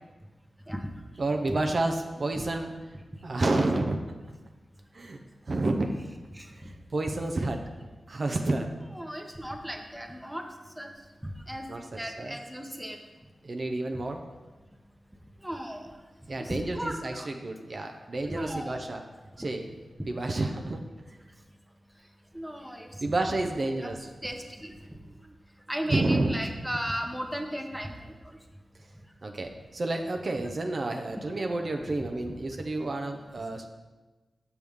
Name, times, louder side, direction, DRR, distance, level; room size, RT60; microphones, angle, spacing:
voice 1, 1.2-2.7 3.2-4.0 4.9-5.2 5.5-5.9 6.5-7.6 8.1-8.7 11.7-12.4 13.4-14.2 16.3-19.0 19.4-19.7 20.1-21.2 23.0-24.0 25.0-25.3 25.9-26.4 29.2-33.7, right 2 dB, 55° right, 4 dB, 0.6 m, -30 dB
voice 2, 8.9-10.4 10.8-10.9 11.2-11.7 11.9-13.0 15.4-15.9 16.4-17.3 18.2-18.8 19.4-19.5 22.3-23.1 23.8-23.9 24.2-25.0 25.7-28.1, equal, 5° right, 3 dB, 0.9 m, -35 dB
7.0 x 6.2 x 3.5 m, 1.2 s
cardioid pair, 55°, 0 cm